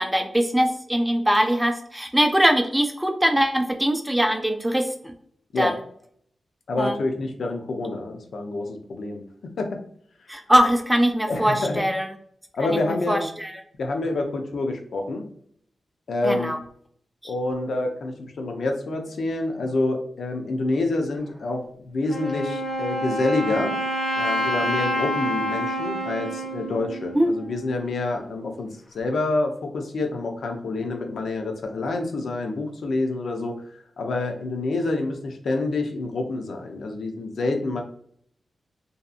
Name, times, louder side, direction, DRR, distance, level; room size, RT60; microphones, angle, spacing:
voice 1, 0.0-5.1 5.6-5.7 6.8-6.9 10.3-12.1 12.7-13.5 16.2-16.6 27.2-27.3, equal, 5° right, 5 dB, 0.4 m, -22 dB
voice 2, 6.7-9.2 9.6-9.8 11.3-11.8 12.5-13.3 13.8-15.3 16.1-16.5 17.2-23.7 24.1-37.8, left 2 dB, 80° left, 4 dB, 0.5 m, -27 dB
Wind instrument woodwind instrument, 22.1-27.8, equal, 45° left, 1.0 m, -28 dB
2.7 x 2.4 x 2.3 m, 0.65 s
cardioid pair, 75°, 0 cm